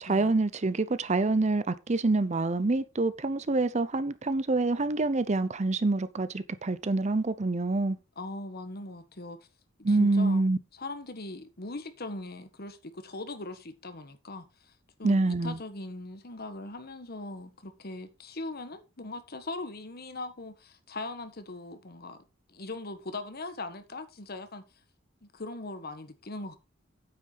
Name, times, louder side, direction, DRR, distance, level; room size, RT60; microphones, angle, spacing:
voice 1, 0.0-8.0 9.8-10.6 15.0-15.6, right 2 dB, 35° right, 0.6 m, -26 dB
voice 2, 8.2-9.4 9.9-10.4 10.8-14.7 15.0-22.2 22.5-24.6 25.2-26.6, left 2 dB, 50° left, 1.4 m, -40 dB
9.3 x 8.0 x 4.0 m
head